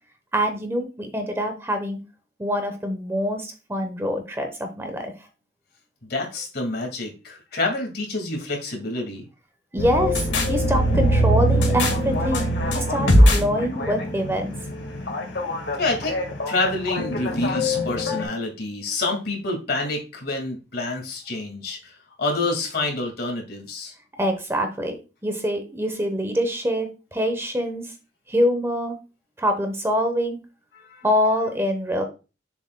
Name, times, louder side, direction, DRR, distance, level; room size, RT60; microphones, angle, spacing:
voice 1, 0.3-2.0 2.4-5.1 9.7-14.5 24.2-25.0 25.2-27.9 28.3-28.9 29.4-30.4 31.0-32.0, equal, 15° right, 6 dB, 1.0 m, -25 dB
voice 2, 6.1-9.3 15.8-16.2 16.5-23.9 30.7-31.1, left 2 dB, 60° left, 2 dB, 2.2 m, -27 dB
sound 1, 9.8-18.2, equal, 90° left, 1.8 m, -22 dB
7.0 x 6.9 x 2.3 m, 0.31 s
head